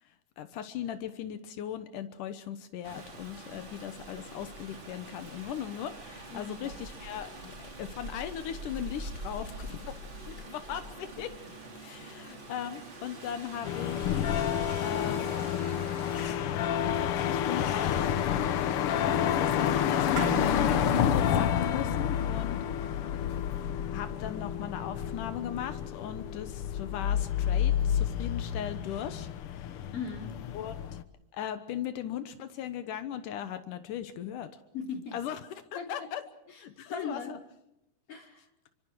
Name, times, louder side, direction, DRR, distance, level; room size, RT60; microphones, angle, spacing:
voice 1, 0.0-9.9 10.3-11.3 11.7-14.2 14.8-15.3 17.3-18.5 19.0-22.6 22.8-23.0 23.9-29.3 30.5-30.7 31.3-34.6 35.1-35.4 35.7-36.2 36.5-37.4, left 10 dB, 80° left, 10 dB, 2.7 m, -38 dB
Rain, 2.8-16.3, right 1 dB, 35° right, 4.6 m, -44 dB
voice 2, 6.3-6.8 29.9-30.3 34.7-35.2 35.8-35.9 36.9-37.3 38.1-38.5, left 5 dB, 45° left, 2 dB, 3.9 m, -38 dB
sound 1, 13.6-31.0, left 9 dB, 65° left, 1.4 m, -29 dB
sound 2, 20.2-24.8, right 9 dB, 55° right, 1.3 m, -42 dB
27.5 x 24.5 x 4.7 m, 0.87 s
omnidirectional pair, 3.6 m